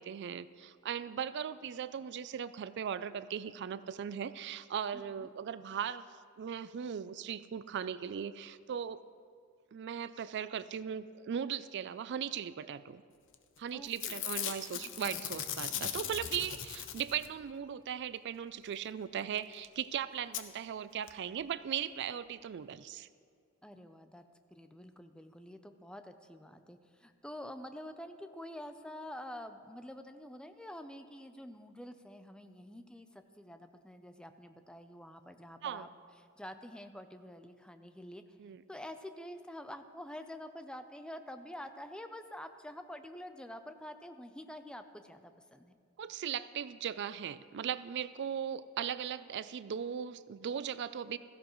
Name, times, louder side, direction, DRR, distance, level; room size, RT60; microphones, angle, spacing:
voice 1, 0.0-6.1 6.4-9.0 9.7-13.0 13.6-23.1 35.6-35.9 38.4-38.6 46.0-51.2, right 8 dB, 55° right, 15 dB, 0.4 m, -38 dB
voice 2, 4.9-5.3 13.7-14.2 23.6-24.2 24.5-35.9 36.4-38.2 38.7-45.7, left 1 dB, 5° left, 8 dB, 0.5 m, -47 dB
Packing tape duct tape / Tearing, 13.3-13.6 13.8-17.4 19.4-19.5 19.6-19.7 20.3-20.4 21.1-21.2 21.4-21.5, left 10 dB, 65° left, 0.7 m, -39 dB
16.0 x 15.0 x 3.1 m, 2.1 s
head